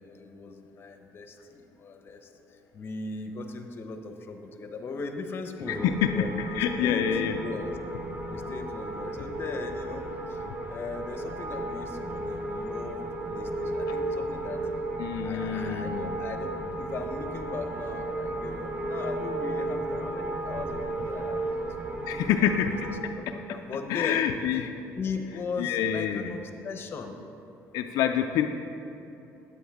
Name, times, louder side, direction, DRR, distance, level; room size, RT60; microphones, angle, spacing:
voice 1, 0.0-2.3 2.7-7.1 7.4-7.8 8.3-10.4 10.7-13.0 13.3-14.6 15.2-22.5 23.0-24.6 25.0-27.2, left 4 dB, 40° left, 6 dB, 0.8 m, -38 dB
voice 2, 5.7-7.4 15.0-16.1 22.0-22.7 23.9-24.7 25.6-26.4 27.7-28.5, left 9 dB, 80° left, 5 dB, 0.4 m, -27 dB
sound 1, 5.7-23.0, right 1 dB, 30° right, 0.8 m, -34 dB
9.8 x 8.4 x 3.5 m, 2.9 s
cardioid pair, 110°, 6 cm